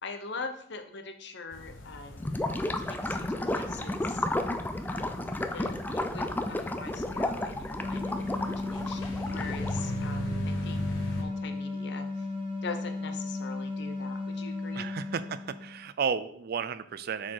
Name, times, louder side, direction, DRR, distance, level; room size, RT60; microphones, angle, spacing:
voice 1, 0.0-2.4 2.8-4.3 4.9-10.8 11.2-12.3 12.6-14.9, left 4 dB, 65° left, 7 dB, 0.8 m, -43 dB
sound 1, 1.5-11.2, equal, 90° left, 1.0 m, -39 dB
Gurgling / Liquid, 2.2-9.9, left 1 dB, 10° left, 0.4 m, -32 dB
sound 2, 7.8-15.9, left 3 dB, 30° right, 1.5 m, -35 dB
voice 2, 14.7-17.3, right 6 dB, 55° right, 13 dB, 0.4 m, -33 dB
6.0 x 4.4 x 4.7 m, 0.66 s
head